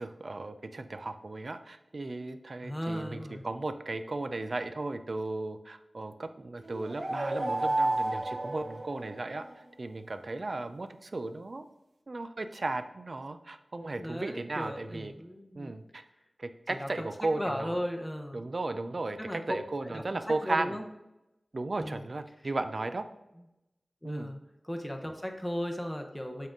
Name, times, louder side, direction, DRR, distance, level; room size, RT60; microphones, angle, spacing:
voice 1, 0.0-9.5 9.8-11.7 12.1-15.1 15.5-16.0 16.4-17.8 18.3-20.8 21.5-23.1 24.0-24.3, right 2 dB, 55° right, 10 dB, 0.4 m, -35 dB
voice 2, 2.6-3.4 14.0-15.7 16.8-17.1 17.4-18.4 19.2-19.4 19.8-20.0 20.5-20.8 21.8-22.0 24.0-24.4 24.6-26.5, equal, 10° left, 3 dB, 0.7 m, -36 dB
sound 1, 6.6-9.5, right 2 dB, 75° right, 0.9 m, -31 dB
7.4 x 3.7 x 3.8 m, 0.92 s
wide cardioid pair, 70°, 0 cm